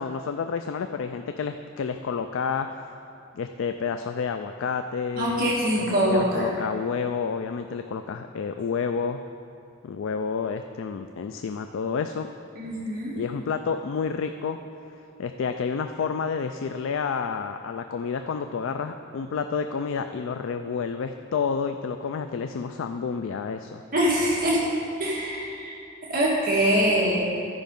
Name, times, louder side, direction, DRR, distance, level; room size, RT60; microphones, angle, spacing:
voice 1, 0.0-2.8 3.3-9.2 9.8-12.3 13.2-14.6 15.2-23.8, left 5 dB, 65° left, 7 dB, 0.3 m, -30 dB
voice 2, 5.2-6.5 12.6-13.1 23.9-24.6 25.0-25.8 26.1-27.2, right 1 dB, 45° right, -5 dB, 1.6 m, -23 dB
12.5 x 5.1 x 5.3 m, 2.7 s
head